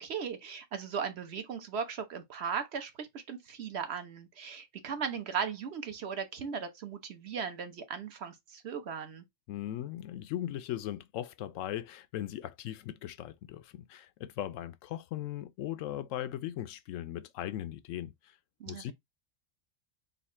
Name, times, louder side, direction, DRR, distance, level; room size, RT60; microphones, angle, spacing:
voice 1, 0.0-9.2 18.6-18.9, right 6 dB, 60° right, 1.0 m, -37 dB
voice 2, 9.5-18.1 18.7-18.9, left 12 dB, 90° left, 0.9 m, -38 dB
4.0 x 2.4 x 4.2 m
omnidirectional pair, 1.3 m